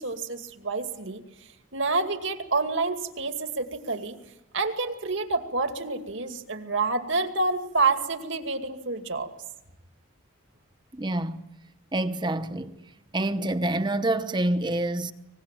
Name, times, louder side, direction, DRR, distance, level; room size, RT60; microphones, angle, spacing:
voice 1, 0.0-4.2 4.5-9.3, right 3 dB, 65° right, 2.4 m, -28 dB
voice 2, 10.9-11.4 11.9-12.8 13.1-15.1, right 1 dB, 20° right, 0.9 m, -27 dB
24.0 x 20.5 x 9.1 m
head